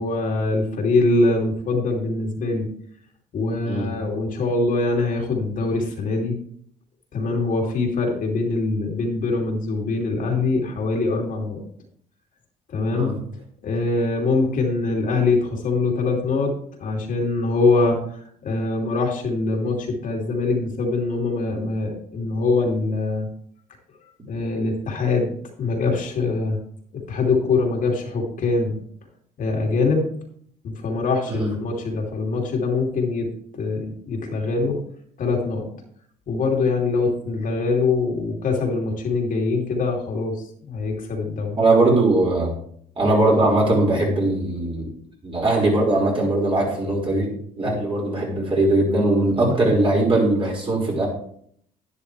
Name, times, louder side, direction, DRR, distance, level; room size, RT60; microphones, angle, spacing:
voice 1, 0.0-2.7 3.3-6.3 7.1-11.6 12.7-13.1 13.6-16.5 16.8-23.3 24.3-26.6 26.9-28.8 29.4-30.1 30.6-33.3 33.5-34.8 35.2-35.7 36.3-40.3 40.7-41.5 47.6-47.9, left 3 dB, 50° left, 0 dB, 2.8 m, -23 dB
voice 2, 41.6-42.5 43.0-44.9 45.2-47.3 47.6-51.1, right 2 dB, 30° right, -2 dB, 5.3 m, -20 dB
11.5 x 10.5 x 3.4 m, 0.65 s
cardioid pair, 110°, 17 cm